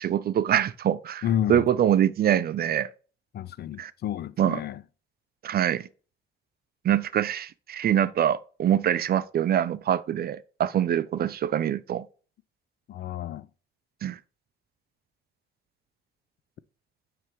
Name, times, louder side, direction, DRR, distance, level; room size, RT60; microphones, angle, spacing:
voice 1, 0.0-1.2 1.5-2.9 3.8-3.9 4.4-4.6 5.4-5.9 6.8-12.1 14.0-14.2, right 10 dB, 50° right, 0.5 m, -24 dB
voice 2, 1.2-1.7 3.3-4.8 12.9-13.5, left 11 dB, 55° left, 0.4 m, -30 dB
9.3 x 3.3 x 3.0 m
cardioid pair, 90°, 20 cm